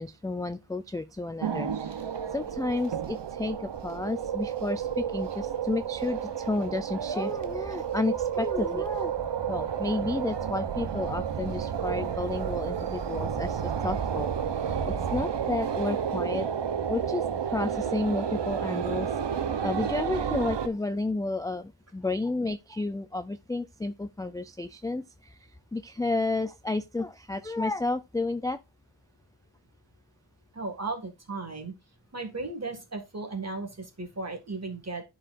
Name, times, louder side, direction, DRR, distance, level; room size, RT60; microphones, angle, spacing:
voice 1, 0.0-1.9 2.3-9.1 9.5-16.5 16.9-17.2 17.5-19.1 19.6-25.4 25.7-28.6, left 2 dB, 10° left, 0.3 m, -31 dB
sound 1, 1.4-20.7, right 8 dB, 70° right, 0.8 m, -31 dB
voice 2, 30.5-31.7 32.1-35.0, right 3 dB, 35° right, 1.9 m, -35 dB
11.0 x 4.8 x 2.5 m
wide cardioid pair, 90°, 43 cm